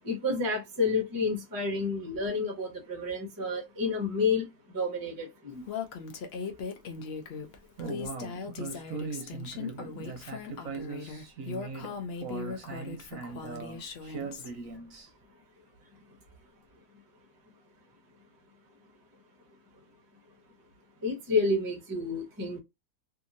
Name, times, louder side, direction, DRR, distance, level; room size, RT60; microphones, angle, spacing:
voice 1, 0.0-4.4 4.7-5.6 21.0-22.6, left 3 dB, 20° right, 0.6 m, -30 dB
Female speech woman speaking, 5.7-14.5, left 5 dB, 70° left, 0.6 m, -39 dB
voice 2, 7.8-15.1, right 4 dB, 65° right, 1.0 m, -40 dB
2.8 x 2.6 x 2.5 m
omnidirectional pair, 1.7 m